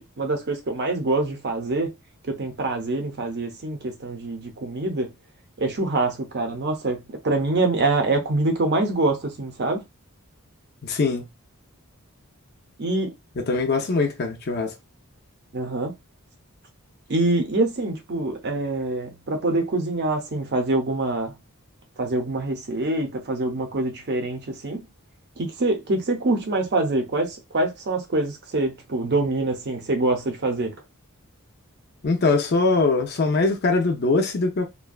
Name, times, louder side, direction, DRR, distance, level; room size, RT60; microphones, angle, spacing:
voice 1, 0.2-1.9 2.2-5.1 5.6-9.8 12.8-13.1 15.5-15.9 17.1-21.3 22.0-24.9 25.4-30.7, right 2 dB, 50° right, 0.6 m, -25 dB
voice 2, 10.8-11.3 13.5-14.8 32.0-34.6, left 3 dB, 45° left, 0.5 m, -22 dB
2.5 x 2.2 x 2.2 m
head